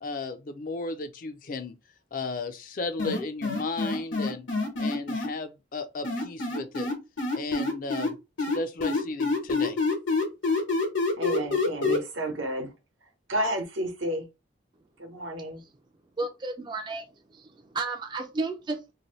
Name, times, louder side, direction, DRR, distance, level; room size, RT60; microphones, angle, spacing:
voice 1, 0.0-1.8 2.1-4.5 4.8-6.9 7.3-9.8, left 3 dB, 45° left, 0.4 m, -34 dB
sound 1, 3.0-5.3 6.0-8.1 8.4-12.0, left 3 dB, 80° left, 1.1 m, -26 dB
voice 2, 11.2-12.7 13.3-14.3 15.0-15.6, right 1 dB, 85° right, 1.0 m, -31 dB
voice 3, 16.2-17.0 17.3-18.9, right 3 dB, 25° right, 0.3 m, -33 dB
2.8 x 2.6 x 3.0 m
head